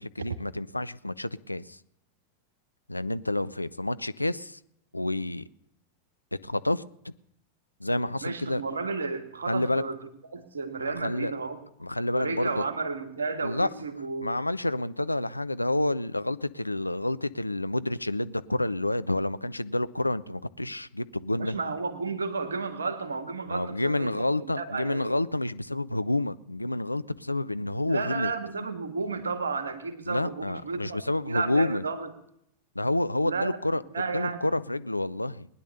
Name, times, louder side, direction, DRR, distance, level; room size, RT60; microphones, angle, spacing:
voice 1, 0.0-1.8 2.9-4.6 4.9-5.4 6.3-7.1 7.8-8.6 9.5-9.8 10.8-11.3 11.8-12.6 13.4-13.7 14.2-21.6 23.5-28.3 30.1-31.8 32.8-35.5, left 2 dB, 85° left, 0.5 m, -29 dB
voice 2, 8.2-10.0 10.2-11.6 12.1-14.3 21.4-25.2 27.8-32.1 33.2-33.6 33.9-34.5, right 4 dB, 70° right, 1.8 m, -32 dB
20.0 x 10.5 x 6.7 m
figure-of-eight pair, 90°, 0 cm